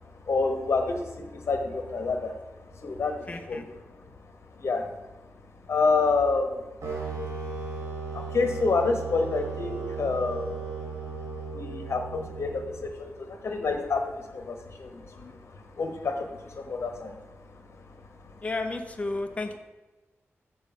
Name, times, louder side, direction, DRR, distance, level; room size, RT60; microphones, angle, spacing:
voice 1, 0.3-2.3 2.8-3.7 4.6-4.9 5.7-6.7 8.1-10.6 11.5-17.3 17.8-17.9, left 4 dB, 65° left, 5 dB, 1.2 m, -28 dB
voice 2, 3.3-3.6 18.4-19.6, left 2 dB, 25° left, 5 dB, 0.8 m, -32 dB
sound 1, 6.8-12.9, right 4 dB, 80° right, 3.0 m, -36 dB
6.9 x 6.4 x 5.6 m, 1.1 s
wide cardioid pair, 120°, 5 cm